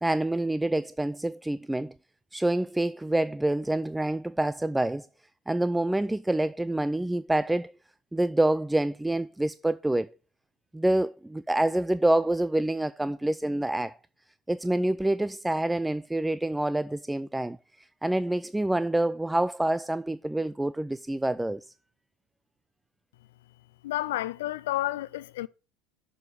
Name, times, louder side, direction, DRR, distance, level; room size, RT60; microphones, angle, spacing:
voice 1, 0.0-1.9 2.3-5.1 5.5-7.7 8.1-10.1 10.7-13.9 14.5-17.6 18.0-21.7, right 1 dB, 5° right, 0.3 m, -27 dB
voice 2, 23.8-25.5, left 15 dB, 70° left, 0.4 m, -30 dB
6.8 x 5.0 x 6.5 m
figure-of-eight pair, 75°, 0 cm